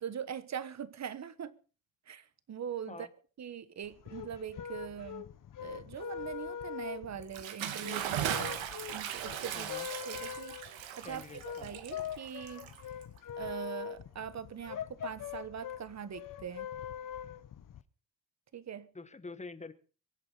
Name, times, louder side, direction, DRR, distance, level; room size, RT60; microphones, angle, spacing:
voice 1, 0.0-1.6 2.1-3.1 3.4-5.3 5.6-8.4 8.9-9.7 10.0-11.2 11.6-12.7 13.4-16.7 18.5-18.9, right 8 dB, 35° right, 1.2 m, -42 dB
sound 1, 3.9-17.8, left 9 dB, 45° left, 1.0 m, -43 dB
Bathtub (filling or washing) / Splash splatter, 7.2-13.2, right 10 dB, 85° right, 2.1 m, -38 dB
voice 2, 9.5-9.9 11.0-11.7 18.9-19.7, left 3 dB, 15° left, 1.3 m, -46 dB
23.0 x 8.7 x 5.6 m
cardioid pair, 150°, 45 cm